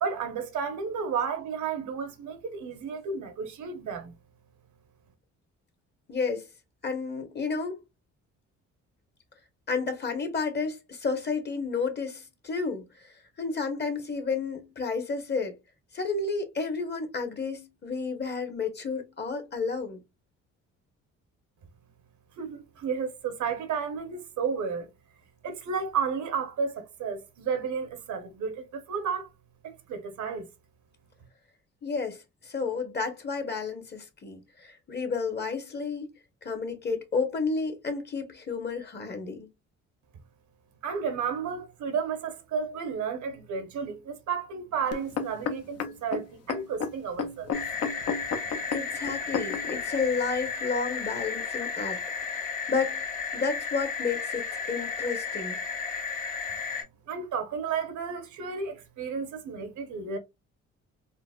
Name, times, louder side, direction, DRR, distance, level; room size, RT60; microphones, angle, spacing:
voice 1, 0.0-4.1 22.4-24.9 25.4-29.3 29.6-30.5 40.8-47.5 48.4-48.5 56.7-60.2, right 6 dB, 70° right, 0.9 m, -32 dB
voice 2, 6.1-6.5 6.8-7.8 9.7-15.6 15.9-20.0 31.8-39.5 48.7-53.1 53.3-55.6, left 4 dB, 35° left, 1.0 m, -31 dB
sound 1, 44.9-49.8 50.5-50.6, left 5 dB, 55° left, 0.6 m, -32 dB
sound 2, 47.5-56.8, left 5 dB, 85° left, 1.7 m, -33 dB
3.9 x 2.1 x 2.3 m
cardioid pair, 90°, 30 cm